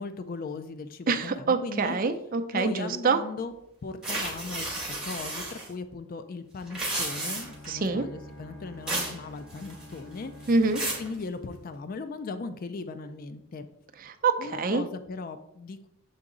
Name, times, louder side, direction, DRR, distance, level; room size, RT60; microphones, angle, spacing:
voice 1, 0.0-2.0 2.5-3.5 3.8-10.5 10.9-13.7 14.4-15.9, left 4 dB, 40° left, 10 dB, 0.4 m, -38 dB
voice 2, 1.1-3.2 7.7-8.0 10.5-10.8 14.0-14.8, right 4 dB, 40° right, 8 dB, 0.5 m, -26 dB
sound 1, 4.0-5.7 6.6-7.7 8.9-9.2 9.5-10.0 10.4-11.1, right 2 dB, 5° right, 1.8 m, -32 dB
sound 2, 7.0-12.0, left 1 dB, 70° left, 1.9 m, -48 dB
7.3 x 3.8 x 3.8 m, 0.79 s
head